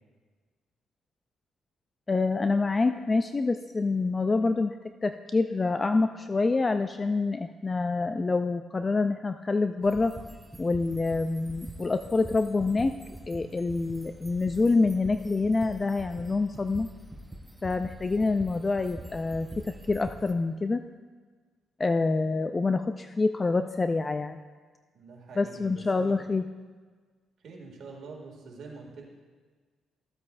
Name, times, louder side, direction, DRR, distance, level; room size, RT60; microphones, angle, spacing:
voice 1, 2.1-4.7 5.0-10.1 10.6-13.0 13.3-16.9 17.6-20.8 21.8-24.4 25.4-26.4, left 3 dB, 25° left, 9 dB, 0.3 m, -26 dB
sound 1, 9.8-20.3, right 1 dB, 10° right, 0.8 m, -45 dB
voice 2, 24.9-26.2 27.4-29.0, right 4 dB, 65° right, -1 dB, 2.1 m, -45 dB
14.5 x 8.2 x 2.5 m, 1.5 s
cardioid pair, 90°, 0 cm